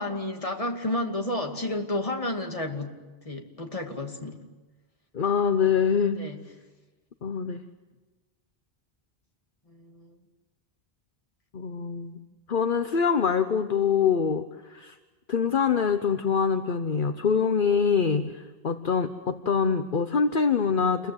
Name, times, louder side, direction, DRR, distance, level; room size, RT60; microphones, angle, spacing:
voice 1, 0.0-3.0 3.2-4.4 6.1-6.4 9.7-10.1, left 1 dB, 35° left, 3 dB, 2.5 m, -31 dB
voice 2, 5.1-6.2 7.2-7.6 11.5-12.2 12.5-15.0 15.3-21.1, left 6 dB, 55° left, 8 dB, 1.1 m, -24 dB
29.0 x 22.0 x 8.0 m, 1.2 s
omnidirectional pair, 1.0 m